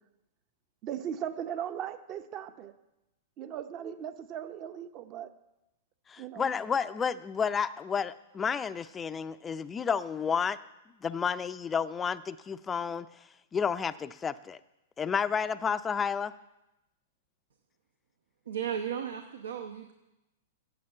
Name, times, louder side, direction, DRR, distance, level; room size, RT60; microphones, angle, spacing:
voice 1, 0.8-2.7 3.4-5.3 6.2-6.5, right 9 dB, 40° right, 10 dB, 0.8 m, -38 dB
voice 2, 6.1-10.6 11.0-13.1 13.5-14.6 15.0-16.3, left 6 dB, 20° left, 14 dB, 0.4 m, -31 dB
voice 3, 18.5-19.9, right 8 dB, 80° right, 5 dB, 0.8 m, -35 dB
8.7 x 6.6 x 8.3 m, 0.94 s
hypercardioid pair, 115°, 0 cm